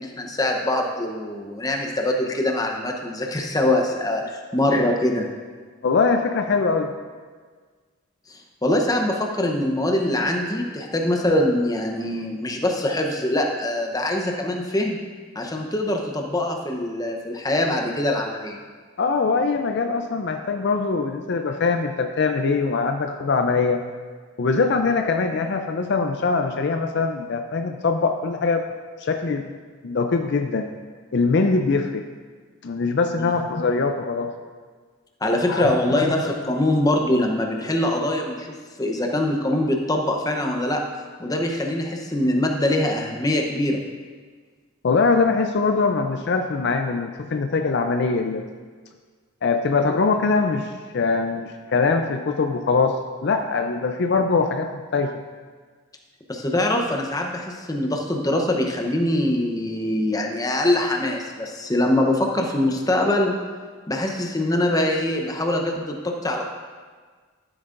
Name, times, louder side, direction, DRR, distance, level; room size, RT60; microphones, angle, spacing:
voice 1, 0.0-5.3 8.3-15.0 15.3-18.6 33.2-33.3 35.2-38.5 38.8-40.8 41.2-43.8 56.3-63.3 63.9-66.4, left 1 dB, 15° left, 1 dB, 0.7 m, -23 dB
voice 2, 5.8-6.9 19.0-23.8 24.4-28.6 29.0-29.4 29.8-30.7 31.1-32.0 32.6-34.3 35.5-36.2 44.8-48.4 49.4-52.9 53.2-55.2, left 4 dB, 50° left, 6 dB, 0.4 m, -22 dB
13.5 x 8.0 x 2.5 m, 1.5 s
head